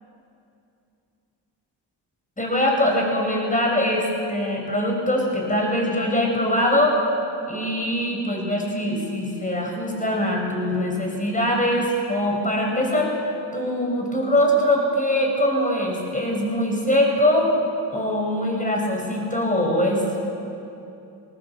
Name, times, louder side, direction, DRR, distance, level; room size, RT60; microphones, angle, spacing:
voice 1, 2.4-7.0 7.5-13.1 13.5-17.6 17.9-20.0, left 1 dB, 20° left, 0 dB, 5.8 m, -22 dB
20.5 x 18.5 x 7.5 m, 2.7 s
cardioid pair, 90°, 42 cm